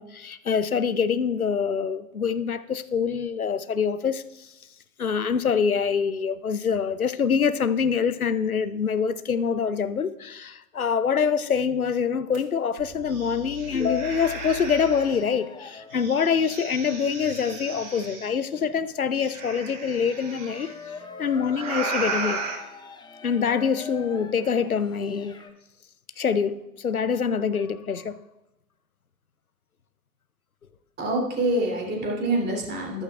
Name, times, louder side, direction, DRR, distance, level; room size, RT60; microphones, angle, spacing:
voice 1, 0.0-4.5 5.0-20.7 21.2-22.4 23.2-25.4 26.2-28.2, left 6 dB, 90° left, 0.6 m, -25 dB
sound 1, 12.3-12.4 12.8-15.2 15.9-18.3 19.1-20.7 21.5-22.5, right 3 dB, 60° right, 4.2 m, -34 dB
sound 2, 13.0-25.5, left 4 dB, 10° left, 0.8 m, -45 dB
voice 2, 31.0-33.0, right 1 dB, 25° right, 3.0 m, -26 dB
14.0 x 11.0 x 2.4 m
figure-of-eight pair, 90°, 42 cm